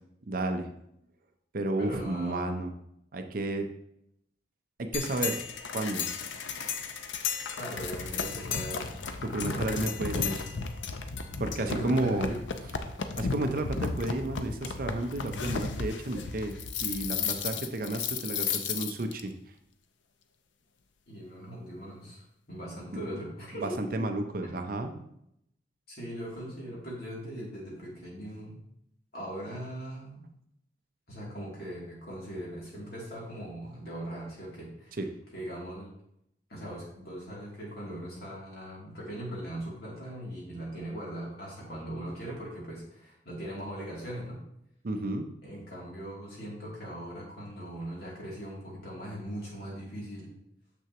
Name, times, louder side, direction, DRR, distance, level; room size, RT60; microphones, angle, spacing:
voice 1, 0.3-0.7 1.5-2.7 3.1-3.7 4.8-5.4 5.7-6.1 9.2-10.5 11.4-12.3 13.2-19.3 23.5-24.9 35.0-35.1 44.8-45.3, right 2 dB, 50° right, 6 dB, 0.5 m, -32 dB
voice 2, 1.8-2.4 7.6-8.9 11.6-12.4 17.1-17.6 21.1-24.0 24.4-24.9 25.9-28.6 29.1-30.2 31.1-35.0 35.3-35.9 36.5-44.4 45.4-50.3, right 1 dB, 55° left, -5 dB, 2.6 m, -40 dB
sound 1, 4.9-19.2, left 5 dB, 85° left, 0.6 m, -34 dB
6.8 x 6.2 x 2.9 m, 0.76 s
head